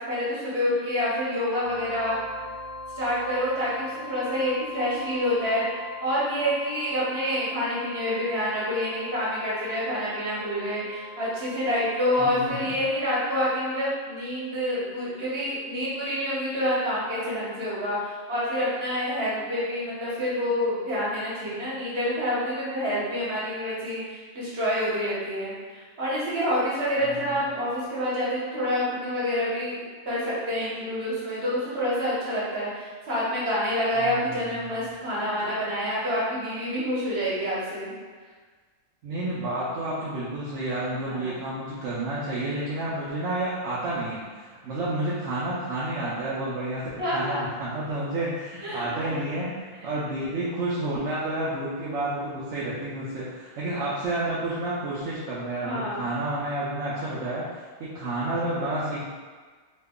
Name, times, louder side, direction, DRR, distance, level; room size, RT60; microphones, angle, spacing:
voice 1, 0.1-2.1 3.0-5.7 6.0-37.9 41.0-41.4 47.0-47.4 48.6-49.2 55.6-56.0, equal, 50° right, -8 dB, 1.2 m, -27 dB
sound 1, 1.6-12.5, left 2 dB, 90° left, 0.4 m, -41 dB
voice 2, 12.2-12.7 27.0-27.4 34.0-34.7 39.0-57.4 57.8-59.0, right 1 dB, 65° right, -8 dB, 0.8 m, -30 dB
3.1 x 2.2 x 3.5 m, 1.5 s
omnidirectional pair, 1.5 m